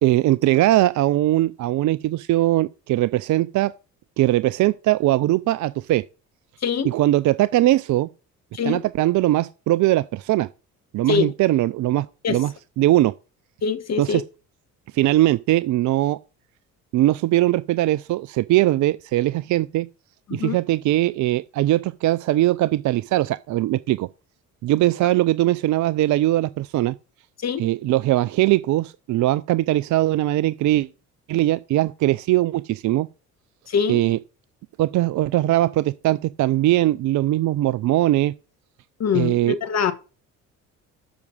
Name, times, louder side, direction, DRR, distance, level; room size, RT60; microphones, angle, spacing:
voice 1, 0.0-3.7 4.2-6.0 6.9-8.1 8.6-10.5 10.9-12.5 12.8-13.1 14.0-14.2 14.9-16.2 16.9-19.9 20.3-24.1 24.6-26.9 27.6-30.9 31.3-33.1 33.9-34.2 34.8-38.3 39.1-39.6, right 15 dB, 45° right, 0.5 m, -20 dB
voice 2, 13.6-14.2 20.3-20.6 27.4-27.6 33.7-34.0 39.0-39.9, left 6 dB, 40° left, 1.3 m, -23 dB
7.1 x 6.0 x 7.1 m
hypercardioid pair, 60°, 41 cm